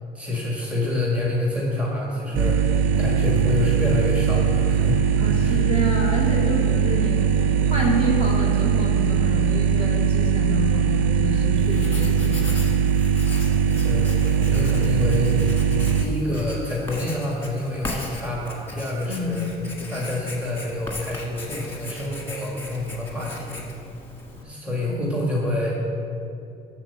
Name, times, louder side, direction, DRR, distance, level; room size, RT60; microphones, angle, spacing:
voice 1, 0.1-2.6 3.0-5.1 5.4-5.6 13.8-15.5 16.0-19.5 19.9-23.6 24.4-25.7, left 1 dB, 10° right, -4 dB, 1.8 m, -27 dB
sound 1, 2.3-16.0, right 7 dB, 90° right, 0.5 m, -20 dB
voice 2, 5.2-7.3 7.7-12.6 19.0-20.0 24.3-24.6 24.9-25.0, equal, 35° right, -3 dB, 2.2 m, -28 dB
Writing, 11.6-24.4, left 2 dB, 15° left, 1.7 m, -37 dB
12.0 x 4.4 x 6.9 m, 2.8 s
cardioid pair, 110°, 17 cm